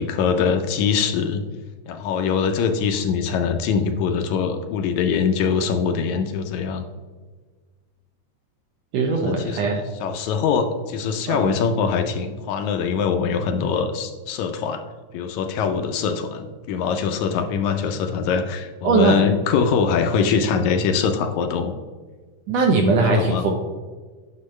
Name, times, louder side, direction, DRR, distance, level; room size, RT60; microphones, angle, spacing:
voice 1, 0.0-1.4 1.9-6.8 9.1-14.8 15.1-21.7 23.0-23.5, left 6 dB, 80° left, 6 dB, 1.9 m, -23 dB
voice 2, 8.9-9.8 11.3-11.5 18.8-19.2 22.5-23.5, right 3 dB, 75° right, 2 dB, 1.6 m, -20 dB
10.0 x 5.7 x 3.1 m, 1.4 s
omnidirectional pair, 3.6 m